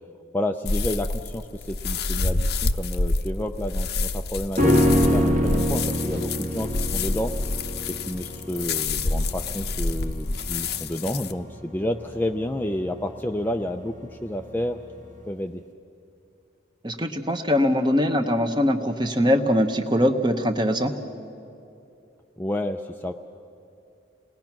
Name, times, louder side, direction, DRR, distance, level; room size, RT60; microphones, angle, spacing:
voice 1, 0.3-7.3 7.9-14.8 15.3-15.6 22.4-23.1, left 1 dB, 10° left, 4 dB, 0.4 m, -30 dB
sound 1, 0.7-11.3, left 3 dB, 55° left, 0.7 m, -28 dB
sound 2, 4.6-14.0 14.3-14.4, equal, 40° right, 1.7 m, -26 dB
voice 2, 16.8-20.9, equal, 25° right, 6 dB, 1.1 m, -22 dB
29.0 x 20.0 x 6.0 m, 2.7 s
head